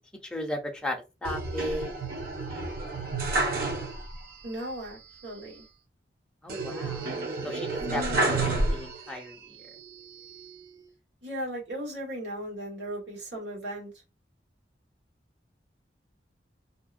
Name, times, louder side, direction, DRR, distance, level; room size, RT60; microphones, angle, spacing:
voice 1, 0.2-1.9 6.4-9.4, left 1 dB, 5° left, 0.5 m, -35 dB
sound 1, 1.2-4.3 4.6-4.7 6.5-9.2 9.8-10.6, right 2 dB, 55° right, 0.6 m, -30 dB
voice 2, 4.4-5.7 7.9-8.2 11.2-13.9, equal, 90° right, 1.5 m, -36 dB
2.7 x 2.1 x 2.4 m
head